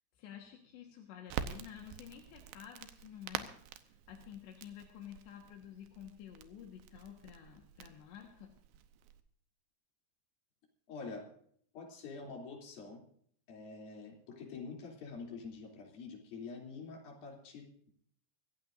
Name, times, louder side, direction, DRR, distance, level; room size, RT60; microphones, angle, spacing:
voice 1, 0.2-3.5 3.9-8.5, left 9 dB, 80° left, 2 dB, 3.7 m, -51 dB
Crackle, 1.3-9.2, right 10 dB, 80° right, 3.0 m, -47 dB
voice 2, 10.9-11.3 11.7-13.0 13.5-17.9, left 4 dB, 55° left, 0 dB, 4.8 m, -46 dB
25.0 x 15.0 x 2.6 m, 0.63 s
omnidirectional pair, 5.1 m